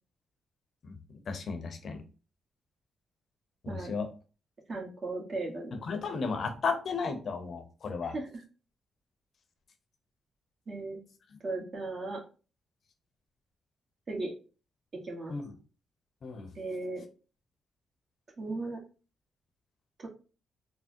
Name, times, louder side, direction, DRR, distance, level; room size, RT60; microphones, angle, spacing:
voice 1, 1.3-2.0 3.6-4.1 5.8-8.1 15.3-15.5 16.2-16.5, left 4 dB, 60° left, 7 dB, 0.6 m, -34 dB
voice 2, 4.7-5.7 8.0-8.4 10.7-11.0 11.4-12.2 14.1-14.3 15.0-15.4 16.5-17.0 18.4-18.8 20.0-20.1, right 2 dB, 45° right, 0 dB, 1.1 m, -36 dB
3.5 x 2.0 x 2.6 m, 0.35 s
supercardioid pair, 55°, 0 cm